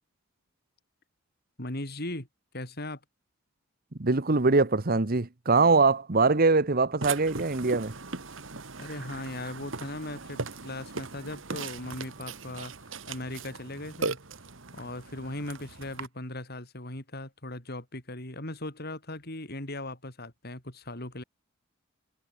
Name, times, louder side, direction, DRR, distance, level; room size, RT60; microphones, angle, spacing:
voice 1, 1.6-2.3 2.5-3.0 8.8-12.7 13.1-14.2 14.7-21.2, left 1 dB, 50° left, 5.7 m, -38 dB
voice 2, 4.0-7.9, right 3 dB, 50° right, 1.1 m, -23 dB
Burping eructation, 7.0-16.1, right 4 dB, 70° right, 1.8 m, -39 dB
head